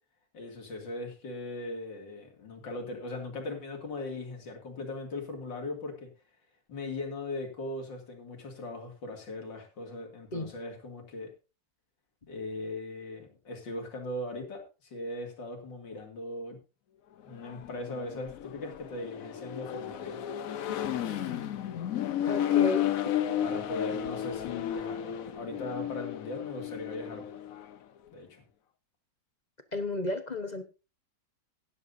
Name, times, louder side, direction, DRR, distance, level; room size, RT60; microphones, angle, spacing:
voice 1, 0.3-6.1 6.7-11.3 12.3-16.6 17.2-20.2 23.4-27.2 28.1-28.4, left 2 dB, 75° left, 3 dB, 3.2 m, -39 dB
Accelerating revving vroom, 17.3-27.8, left 11 dB, 60° left, 1.0 m, -33 dB
voice 2, 22.2-23.0 29.7-30.6, left 2 dB, 30° left, 8 dB, 0.8 m, -32 dB
16.5 x 10.5 x 2.7 m, 0.30 s
omnidirectional pair, 2.0 m